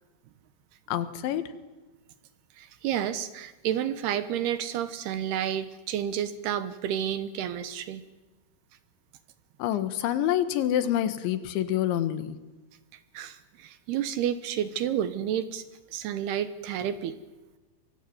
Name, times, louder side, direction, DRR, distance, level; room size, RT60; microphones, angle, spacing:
voice 1, 0.9-1.4 9.6-12.4, left 11 dB, 85° left, 11 dB, 3.8 m, -27 dB
voice 2, 2.6-8.0 13.1-15.6 15.9-17.1, right 10 dB, 70° right, 12 dB, 2.8 m, -30 dB
23.5 x 23.5 x 9.4 m, 1.1 s
omnidirectional pair, 5.2 m